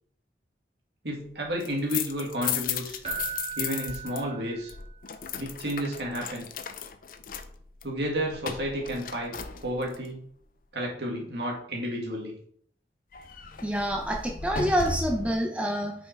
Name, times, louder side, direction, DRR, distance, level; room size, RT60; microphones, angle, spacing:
voice 1, 1.0-3.0 3.6-4.7 5.4-6.5 7.8-10.2 10.7-12.4, equal, 70° right, -1 dB, 2.2 m, -31 dB
sound 1, 1.5-4.2 4.5-10.1 13.1-15.3, left 7 dB, 50° left, 0.5 m, -36 dB
Keyboard (musical), 3.0-5.0 8.2-8.4, right 8 dB, 35° right, 1.8 m, -38 dB
voice 2, 13.6-15.9, equal, 5° right, 1 dB, 0.7 m, -27 dB
5.6 x 5.6 x 4.6 m, 0.62 s
head